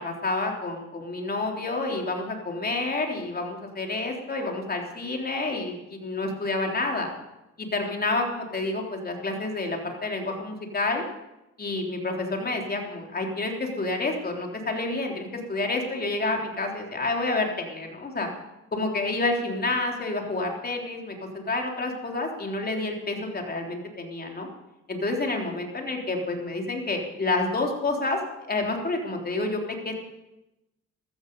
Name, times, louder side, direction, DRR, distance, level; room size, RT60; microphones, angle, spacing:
voice 1, 0.0-7.1 7.6-11.0 11.6-18.3 18.7-24.5 24.9-28.2 28.5-30.0, left 2 dB, 30° left, 1 dB, 3.5 m, -29 dB
15.0 x 14.0 x 5.4 m, 0.93 s
cardioid pair, 90°, 30 cm